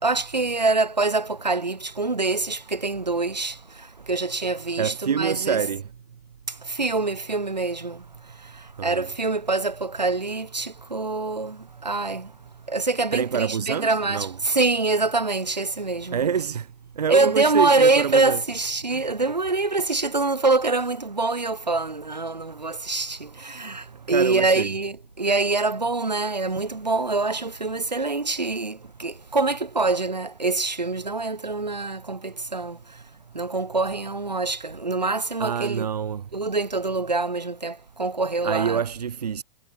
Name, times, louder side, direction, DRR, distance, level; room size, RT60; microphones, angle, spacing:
voice 1, 0.0-5.6 6.7-8.0 8.8-12.3 12.7-16.3 17.1-32.8 33.3-35.9 36.3-38.8, right 3 dB, 85° right, 4.1 m, -25 dB
voice 2, 4.8-5.8 8.8-9.1 13.1-14.3 16.1-16.7 17.0-18.4 18.9-19.0 24.1-24.7 35.4-36.2 38.4-39.4, right 7 dB, 70° right, 2.8 m, -26 dB
figure-of-eight pair, 105°, 21 cm